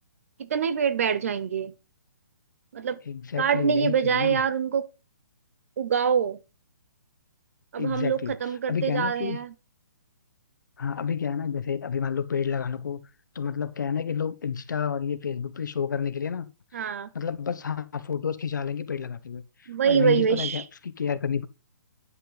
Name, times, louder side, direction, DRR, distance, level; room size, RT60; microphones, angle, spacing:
voice 1, 0.4-1.7 2.7-3.0 3.4-4.9 5.8-6.4 7.7-9.5 16.7-17.1 19.7-20.6, right 7 dB, 45° right, 0.9 m, -25 dB
voice 2, 3.1-4.4 7.8-8.3 8.7-9.4 10.8-13.0 13.3-16.5 16.7-16.9 17.1-21.5, left 7 dB, 70° left, 1.2 m, -30 dB
9.8 x 6.0 x 5.6 m
hypercardioid pair, 170°, 10 cm